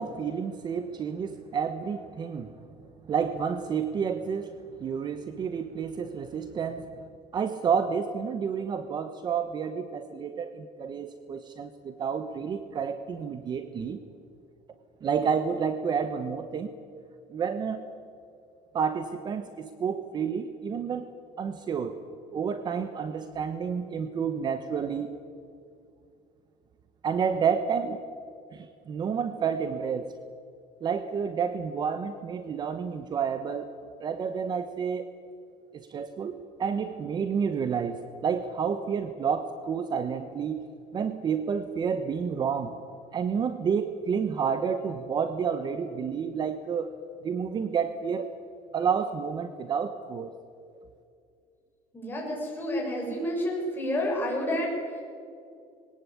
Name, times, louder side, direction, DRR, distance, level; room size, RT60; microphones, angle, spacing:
voice 1, 0.0-2.5 3.1-4.5 4.8-6.9 7.3-14.0 15.0-16.7 17.3-17.8 18.7-21.1 21.4-22.0 22.3-25.1 27.0-28.0 28.5-30.1 30.8-33.7 34.0-35.1 35.7-36.3 36.6-40.6 40.9-42.7 43.1-47.0 47.2-48.3 48.7-50.3, right 6 dB, 35° right, 10 dB, 1.1 m, -30 dB
voice 2, 51.9-55.0, left 1 dB, 15° left, -1 dB, 6.7 m, -30 dB
21.5 x 18.5 x 8.6 m, 2.4 s
cardioid pair, 140°, 13 cm